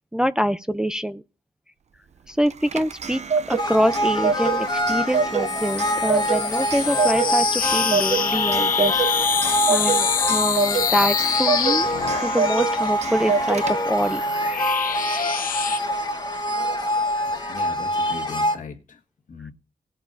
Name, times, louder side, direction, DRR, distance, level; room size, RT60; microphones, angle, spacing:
voice 1, 0.1-1.2 2.3-3.2 3.5-9.0 9.7-11.9 12.2-14.2, equal, 5° right, 0.5 m, -25 dB
Clock, 2.5-14.1, right 6 dB, 50° right, 0.6 m, -27 dB
sound 1, 3.6-18.5, equal, 30° left, 1.3 m, -25 dB
sound 2, 5.5-12.8 13.6-15.8, left 7 dB, 85° left, 0.8 m, -26 dB
voice 2, 17.2-19.0 19.3-19.5, left 5 dB, 70° left, 1.6 m, -39 dB
19.0 x 9.0 x 2.6 m
wide cardioid pair, 145°, 14 cm